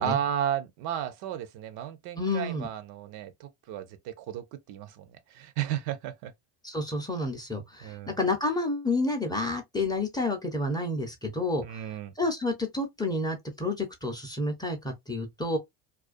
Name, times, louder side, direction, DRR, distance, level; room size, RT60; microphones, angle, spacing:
voice 1, 0.0-6.3 7.8-8.1 11.6-12.1, right 10 dB, 55° right, 0.6 m, -33 dB
voice 2, 2.2-2.7 6.6-11.8 12.2-15.6, left 2 dB, 10° left, 0.6 m, -30 dB
2.4 x 2.2 x 2.4 m
supercardioid pair, 105°, 45 cm